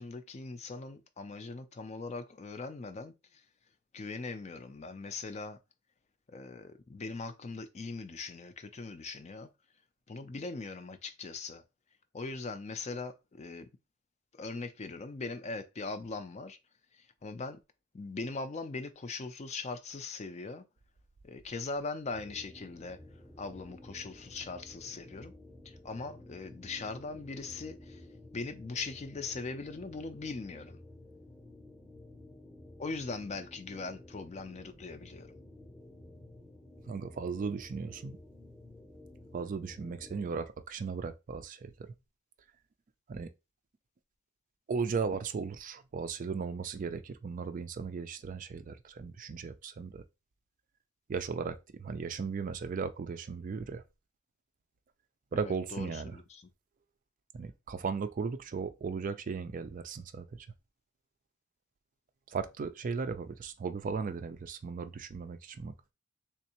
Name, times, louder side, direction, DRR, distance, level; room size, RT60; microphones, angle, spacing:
voice 1, 0.0-3.4 3.9-5.6 6.3-9.5 10.1-11.6 12.1-13.7 14.3-16.6 16.9-17.6 17.9-20.6 21.2-23.0 23.4-25.3 25.6-28.1 28.3-30.8 32.8-35.3 55.3-56.5, left 3 dB, 30° left, 0.4 m, -40 dB
sound 1, 22.1-40.4, left 1 dB, 5° left, 0.7 m, -52 dB
voice 2, 36.9-38.2 39.3-41.7 43.1-43.3 44.7-50.0 51.1-53.8 55.3-56.2 57.3-60.5 62.3-65.7, right 5 dB, 40° right, 0.3 m, -36 dB
3.5 x 3.1 x 2.9 m
head